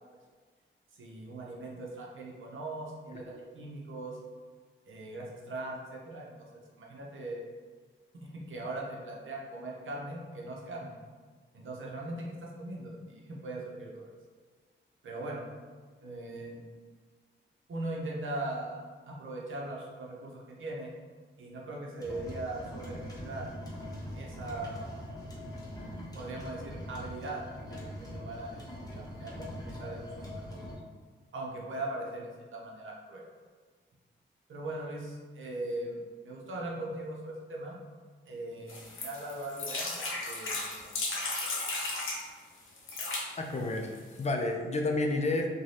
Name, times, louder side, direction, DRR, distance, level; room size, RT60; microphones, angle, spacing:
voice 1, 1.0-4.2 4.9-7.4 8.1-11.0 11.5-14.1 15.0-15.4 16.0-16.6 17.7-20.9 21.4-23.5 24.1-24.9 26.1-27.4 27.7-30.6 31.3-33.3 34.5-37.8 38.3-41.1, right 2 dB, 75° right, -2 dB, 0.6 m, -40 dB
sound 1, 22.0-30.7, equal, 20° left, 0.8 m, -42 dB
sound 2, 38.7-42.2 42.8-43.3 43.9-44.0 44.2-44.3, left 2 dB, 90° left, 0.6 m, -35 dB
voice 2, 43.4-45.5, left 2 dB, 35° left, 2 dB, 0.4 m, -30 dB
2.6 x 2.2 x 3.2 m, 1.5 s
cardioid pair, 80°, 20 cm